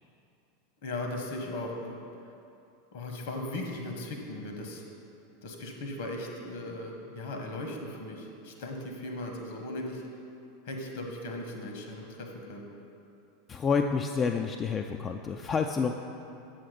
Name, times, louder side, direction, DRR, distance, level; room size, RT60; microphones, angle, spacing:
voice 1, 0.8-2.1 2.9-4.8 5.4-10.0 10.6-12.6, left 1 dB, 60° left, 2 dB, 1.2 m, -38 dB
voice 2, 13.5-15.9, left 5 dB, 30° left, 4 dB, 0.3 m, -28 dB
7.5 x 5.7 x 5.1 m, 2.7 s
figure-of-eight pair, 85°, 0 cm